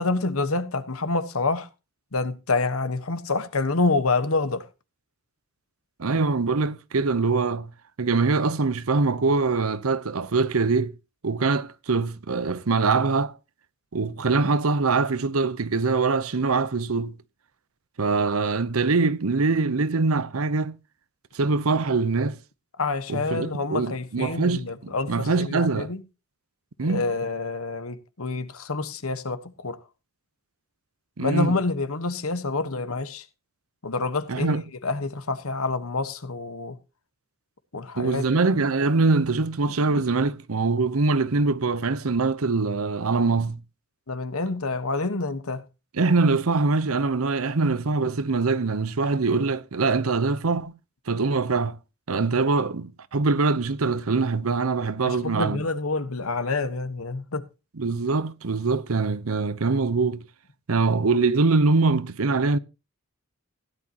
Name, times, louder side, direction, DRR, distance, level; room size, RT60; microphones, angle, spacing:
voice 1, 0.0-1.7 2.1-4.6 22.8-26.0 26.8-29.8 31.2-33.2 33.8-36.8 37.7-38.2 39.9-40.0 44.1-45.6 55.0-57.5, left 3 dB, 80° left, 1.3 m, -27 dB
voice 2, 6.0-7.7 8.0-10.9 11.2-13.3 13.9-17.1 18.0-20.7 21.3-22.4 23.1-25.9 26.8-27.1 31.2-31.6 34.3-34.6 38.0-43.6 45.9-50.7 51.1-51.8 52.1-55.6 57.8-60.2 60.7-62.6, right 3 dB, 80° right, 0.8 m, -23 dB
16.0 x 11.0 x 2.9 m
head